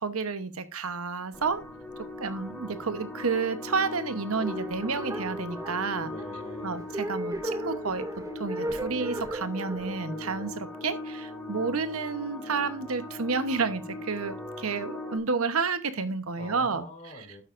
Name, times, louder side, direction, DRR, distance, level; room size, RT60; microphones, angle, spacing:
voice 1, 0.0-1.6 2.2-6.1 6.6-8.0 8.3-16.8, right 4 dB, 90° right, 11 dB, 1.0 m, -30 dB
sound 1, 1.3-15.2, left 2 dB, 5° left, 3.3 m, -40 dB
sound 2, 4.3-11.5, right 1 dB, 15° right, 0.5 m, -36 dB
voice 2, 6.0-6.9 16.3-17.4, left 2 dB, 35° left, 3 dB, 2.8 m, -45 dB
12.0 x 8.9 x 2.6 m, 0.28 s
head